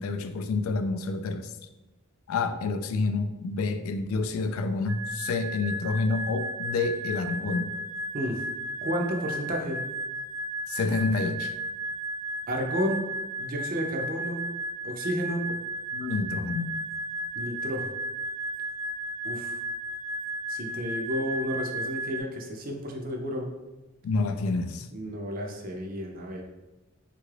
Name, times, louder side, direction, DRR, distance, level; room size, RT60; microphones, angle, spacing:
voice 1, 0.0-1.5 2.3-7.7 10.7-11.5 15.9-16.8 24.0-24.9, left 3 dB, 75° left, 8 dB, 0.3 m, -28 dB
sound 1, 4.9-22.2, right 1 dB, 75° right, 0.8 m, -34 dB
voice 2, 8.8-9.8 12.5-13.0 13.4-14.4 14.8-15.4 17.3-17.9 19.2-19.6 20.5-23.5 24.9-26.4, equal, 40° right, 1 dB, 0.4 m, -31 dB
3.6 x 2.3 x 3.2 m, 1.1 s
head